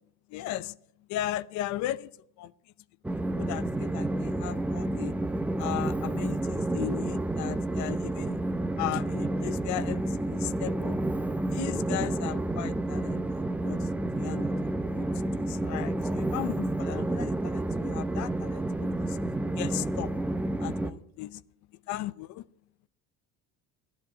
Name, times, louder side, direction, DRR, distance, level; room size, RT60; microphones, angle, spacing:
voice 1, 0.3-0.8 1.1-2.1 2.4-2.5 3.2-5.1 5.6-8.4 8.8-11.0 11.5-13.9 14.2-14.5 14.9-19.2 19.6-20.1 20.6-21.4 21.9-22.4, left 14 dB, 70° left, 0.7 m, -36 dB
Train, 3.0-20.9, right 1 dB, 5° right, 0.7 m, -30 dB
15.0 x 10.5 x 8.4 m
cardioid pair, 150°, 31 cm